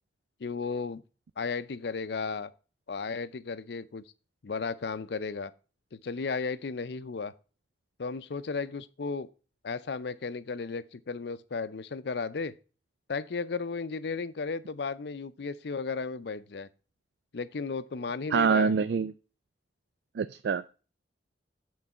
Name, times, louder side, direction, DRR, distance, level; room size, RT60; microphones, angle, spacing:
voice 1, 0.4-1.0 1.4-2.5 2.9-4.0 4.4-5.5 5.9-7.3 8.0-9.3 9.6-12.5 13.1-16.7 17.3-18.7, left 4 dB, 60° left, 0.5 m, -34 dB
voice 2, 18.3-19.1 20.2-20.7, right 5 dB, 65° right, 0.3 m, -25 dB
8.6 x 3.9 x 5.4 m
head